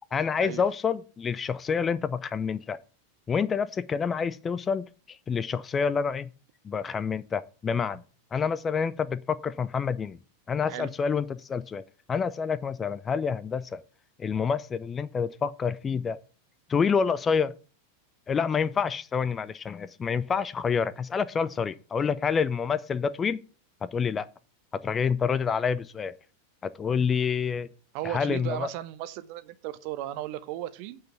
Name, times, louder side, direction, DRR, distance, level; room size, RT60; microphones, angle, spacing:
voice 1, 0.1-2.8 3.3-6.3 6.6-8.0 8.3-10.2 10.5-11.8 12.1-13.8 14.2-16.2 16.7-17.5 18.3-23.4 23.8-24.3 24.8-26.1 26.6-27.7 28.0-28.7, left 6 dB, 20° left, 0.5 m, -28 dB
voice 2, 27.9-31.0, right 13 dB, 45° right, 0.8 m, -35 dB
9.0 x 4.8 x 6.9 m
figure-of-eight pair, 90°, 0 cm